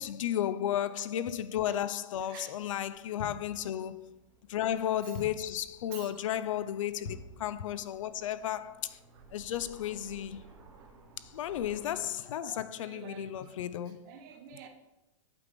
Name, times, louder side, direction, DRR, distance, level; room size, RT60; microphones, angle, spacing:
voice 1, 0.0-4.2 4.5-9.0 9.3-10.4 11.2-14.0, left 11 dB, 75° left, 0.4 m, -34 dB
voice 2, 2.2-2.6 5.0-5.2 5.9-6.3 9.1-9.2 12.2-13.6 13.9-14.7, right 8 dB, 35° right, 0.8 m, -50 dB
Aircraft, 2.5-11.9, right 4 dB, 65° right, 1.6 m, -58 dB
sound 1, 3.2-3.6 5.1-5.6 7.0-7.4, left 4 dB, 90° left, 1.0 m, -42 dB
8.2 x 3.4 x 5.0 m
supercardioid pair, 170°, 17 cm